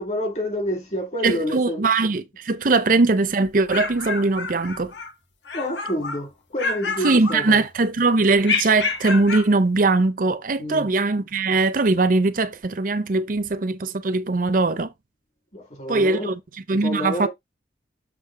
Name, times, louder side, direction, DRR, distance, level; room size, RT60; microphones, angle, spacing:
voice 1, 0.0-1.9 2.7-2.8 5.5-7.7 10.6-10.9 15.5-16.3 16.7-17.3, equal, 40° left, 2.3 m, -28 dB
voice 2, 1.2-4.9 7.0-14.9 15.9-16.4 16.7-17.3, right 3 dB, 50° right, 0.6 m, -21 dB
sound 1, 3.4-5.1 5.4-6.2 6.6-7.8 8.4-9.5, left 4 dB, 85° left, 1.4 m, -29 dB
7.5 x 2.9 x 4.9 m
head